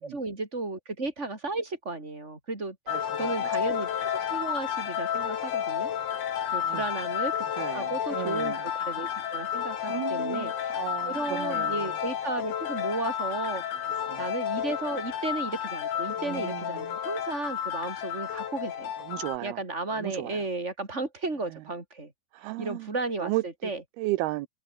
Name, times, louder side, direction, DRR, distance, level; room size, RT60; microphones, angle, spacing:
voice 1, 0.0-5.9 6.5-7.5 7.7-10.7 11.1-13.6 14.2-18.9 19.4-22.1 22.6-23.8, right 3 dB, 15° right, 5.1 m, -34 dB
sound 1, 2.9-19.4, left 9 dB, 75° left, 5.2 m, -31 dB
voice 2, 7.6-8.6 9.9-11.9 14.1-14.2 16.3-16.6 19.1-19.6 20.0-20.4 22.3-22.9 23.2-23.4 24.0-24.5, right 18 dB, 85° right, 2.3 m, -33 dB
omnidirectional pair, 5.3 m